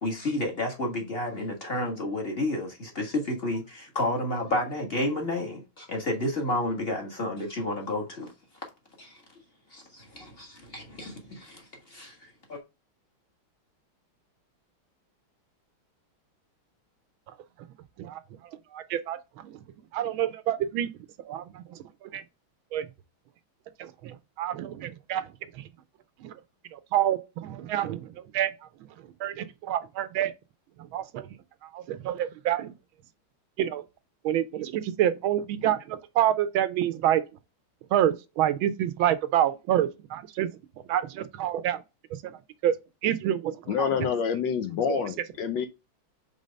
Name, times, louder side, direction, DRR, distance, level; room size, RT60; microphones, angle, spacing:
voice 1, 0.0-8.3 9.0-9.2 9.7-12.6, left 1 dB, 30° left, 1.7 m, -31 dB
voice 2, 18.7-19.6 19.9-20.9 21.2-21.6 22.0-22.2 22.7-22.9 23.8-25.3 26.2-26.3 26.7-28.1 28.3-28.5 29.2-30.3 30.9-31.3 31.7-32.7 33.6-33.8 34.2-37.2 37.9-40.5 40.9-41.8 42.2-42.3 42.6-42.7 43.0-43.9, right 11 dB, 75° right, 1.4 m, -27 dB
voice 3, 43.7-45.7, left 7 dB, 70° left, 1.2 m, -27 dB
5.4 x 3.8 x 5.1 m
omnidirectional pair, 2.3 m